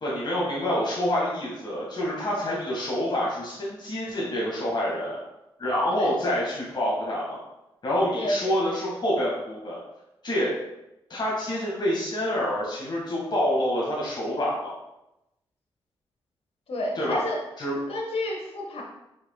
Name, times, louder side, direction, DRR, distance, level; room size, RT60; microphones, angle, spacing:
voice 1, 0.0-5.2 5.6-7.4 7.8-9.8 10.2-10.5 11.1-14.7 16.9-17.2 17.6-17.8, left 1 dB, 45° left, -5 dB, 1.6 m, -27 dB
voice 2, 8.2-8.5 16.7-17.4 17.9-18.8, left 1 dB, 65° left, -1 dB, 1.3 m, -30 dB
4.9 x 4.7 x 2.3 m, 0.90 s
supercardioid pair, 45°, 11 cm